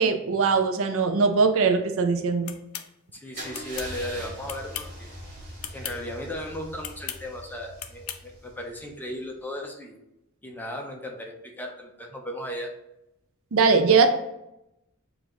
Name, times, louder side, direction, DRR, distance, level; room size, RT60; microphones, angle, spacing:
voice 1, 0.0-2.5 13.5-14.1, right 4 dB, 65° right, 8 dB, 0.5 m, -21 dB
sound 1, 2.5-2.9 3.5-3.9 4.5-5.0 5.6-6.0 6.8-7.2 7.8-8.2, left 10 dB, 75° left, 0.4 m, -36 dB
voice 2, 3.1-5.1 5.7-10.0 10.4-12.7, left 1 dB, 10° left, 1 dB, 0.6 m, -36 dB
Car / Engine starting / Idling, 3.3-9.2, right 1 dB, 40° right, 1.4 m, -42 dB
6.9 x 2.5 x 3.0 m, 0.87 s
head